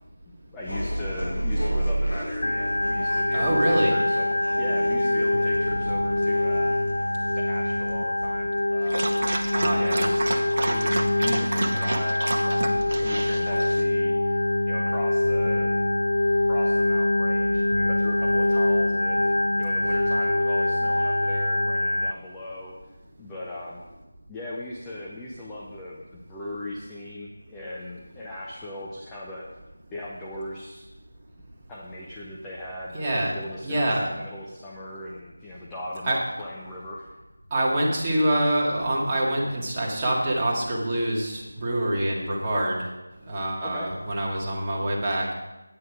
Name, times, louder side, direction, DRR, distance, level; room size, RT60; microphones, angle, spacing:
voice 1, 0.5-4.3 4.6-6.8 7.3-9.1 9.7-10.3 10.6-15.7 16.5-22.7 23.2-23.8 24.3-29.5 29.9-30.9 31.7-32.9 33.3-37.2 43.6-43.9, left 1 dB, 10° left, -5 dB, 0.8 m, -38 dB
sound 1, 0.6-9.3, right 1 dB, 85° left, 2.1 m, -32 dB
Organ, 2.4-22.1, left 1 dB, 65° left, 0.4 m, -24 dB
voice 2, 3.3-4.0 9.5-10.1 32.9-33.3 33.6-34.0 36.1-36.2 37.5-42.8 43.3-45.3, right 1 dB, 20° right, -5 dB, 1.9 m, -25 dB
Dog, 8.8-13.8, right 2 dB, 45° right, 1.0 m, -30 dB
9.6 x 9.2 x 4.9 m, 1.1 s
figure-of-eight pair, 165°, 0 cm